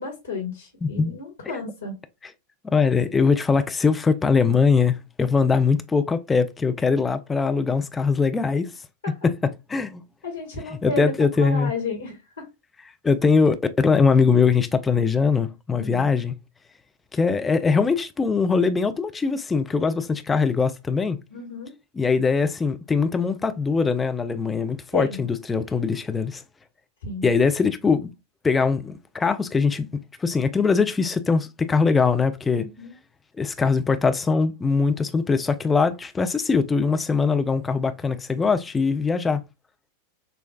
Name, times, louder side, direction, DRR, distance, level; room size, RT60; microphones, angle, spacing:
voice 1, 0.0-2.0 9.0-9.1 10.2-12.5 15.7-16.0 21.3-21.7 24.9-25.2 27.0-27.3 32.5-32.9, left 3 dB, 70° left, 1.5 m, -32 dB
voice 2, 0.8-1.1 2.2-2.3 2.6-8.7 9.2-9.3 9.7-10.0 10.8-11.7 13.0-16.4 17.1-21.2 21.9-26.4 27.2-28.1 28.4-29.9 30.2-32.7 33.4-39.4, left 5 dB, 15° left, 0.5 m, -21 dB
6.3 x 2.3 x 2.2 m
figure-of-eight pair, 90°, 0 cm